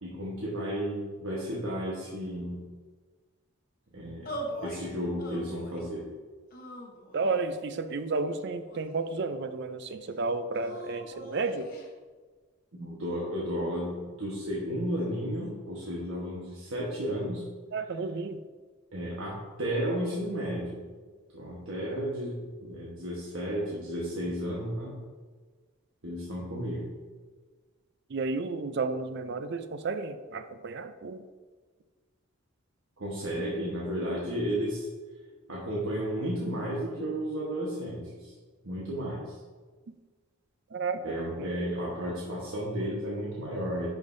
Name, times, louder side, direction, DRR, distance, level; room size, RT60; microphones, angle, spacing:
voice 1, 0.0-2.7 3.9-6.1 12.7-17.4 18.9-20.8 21.3-25.0 26.0-26.9 33.0-34.9 35.5-38.3 38.6-39.4 41.0-43.9, equal, 80° right, -5 dB, 1.2 m, -33 dB
sound 1, 4.3-4.8 5.2-5.9 6.5-7.4 8.2-9.2 10.5-11.9, right 1 dB, 45° left, 0.9 m, -41 dB
voice 2, 7.1-11.7 17.7-18.4 28.1-31.2 40.7-41.5, right 3 dB, 55° right, 10 dB, 0.5 m, -32 dB
10.5 x 5.1 x 2.7 m, 1.4 s
head